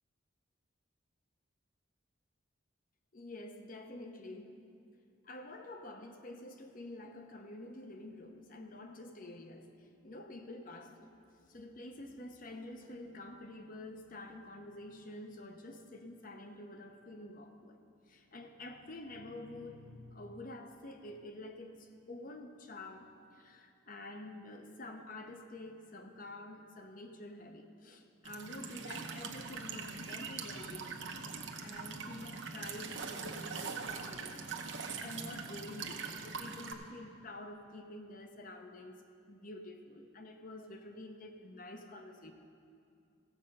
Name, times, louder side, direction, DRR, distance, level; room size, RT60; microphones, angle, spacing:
voice 1, 3.1-4.6 5.2-11.1 11.5-17.8 18.1-31.3 31.6-39.0 39.3-42.3, left 1 dB, 45° left, 5 dB, 0.8 m, -48 dB
Walk footsteps / Chirp tweet / Stream, 28.2-36.7, right 5 dB, 65° right, 0.9 m, -42 dB
15.5 x 7.6 x 5.4 m, 2.5 s
head